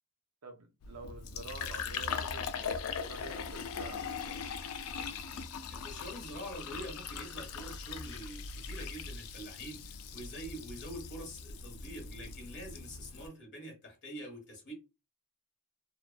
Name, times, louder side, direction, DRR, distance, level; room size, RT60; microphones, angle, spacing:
voice 1, 0.4-2.7 3.1-4.4, right 3 dB, 80° right, 0.6 m, -48 dB
Fill (with liquid), 0.8-13.3, left 6 dB, 75° left, 0.4 m, -40 dB
voice 2, 5.7-14.7, equal, 55° left, 1.3 m, -45 dB
2.9 x 2.1 x 2.2 m
head